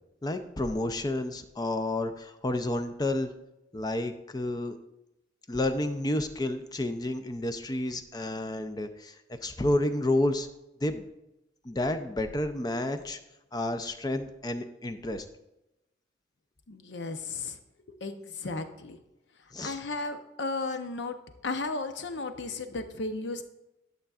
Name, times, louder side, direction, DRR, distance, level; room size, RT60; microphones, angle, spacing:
voice 1, 0.2-3.3 3.7-4.8 5.5-9.2 9.4-10.5 10.8-11.0 11.6-13.2 13.5-15.3 19.5-19.8, left 1 dB, 20° left, 9 dB, 0.4 m, -30 dB
voice 2, 16.7-17.6 18.0-19.0 19.6-21.2 21.4-23.4, left 3 dB, 70° left, 8 dB, 0.7 m, -34 dB
11.5 x 6.7 x 2.4 m, 0.92 s
head